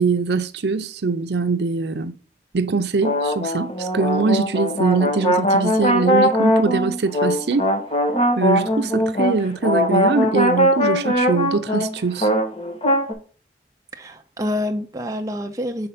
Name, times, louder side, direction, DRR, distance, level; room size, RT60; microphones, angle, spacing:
voice 1, 0.0-2.1 2.5-7.7 8.4-12.3, right 4 dB, 70° right, 0.6 m, -22 dB
sound 1, 3.0-13.1, equal, 30° left, 1.1 m, -20 dB
voice 2, 14.0-15.9, left 1 dB, 20° right, 0.5 m, -27 dB
6.7 x 4.2 x 4.0 m
head